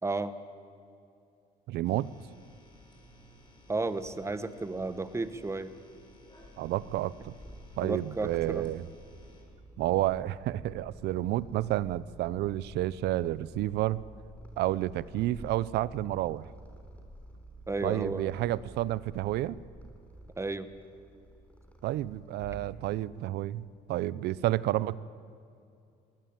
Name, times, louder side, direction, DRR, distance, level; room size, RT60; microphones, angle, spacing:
voice 1, 0.0-0.3 3.7-5.7 7.8-8.7 17.7-18.3 20.4-20.7, right 3 dB, 15° right, 12 dB, 1.2 m, -33 dB
voice 2, 1.7-2.1 6.6-7.3 7.8-8.9 9.8-14.0 14.6-16.5 17.8-19.6 21.8-25.0, right 15 dB, 75° right, 19 dB, 0.7 m, -30 dB
sound 1, 1.8-9.4, equal, 25° left, 5.9 m, -56 dB
Purr, 6.5-23.2, right 1 dB, 10° left, 3.7 m, -51 dB
21.0 x 19.0 x 9.0 m, 2.5 s
cardioid pair, 110°, 17 cm